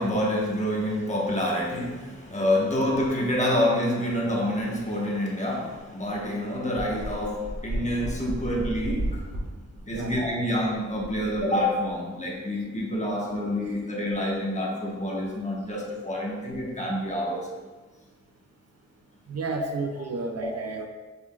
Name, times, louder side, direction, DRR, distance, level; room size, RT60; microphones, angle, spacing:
voice 1, 0.0-9.3 9.8-17.5 19.9-20.1 20.4-20.5, left 1 dB, 25° left, -3 dB, 1.0 m, -27 dB
sound 1, 6.1-6.2 6.8-11.9, right 1 dB, 75° right, 1.3 m, -34 dB
voice 2, 19.3-20.9, right 4 dB, 55° right, 4 dB, 0.5 m, -32 dB
6.8 x 3.4 x 2.3 m, 1.3 s
wide cardioid pair, 80°, 30 cm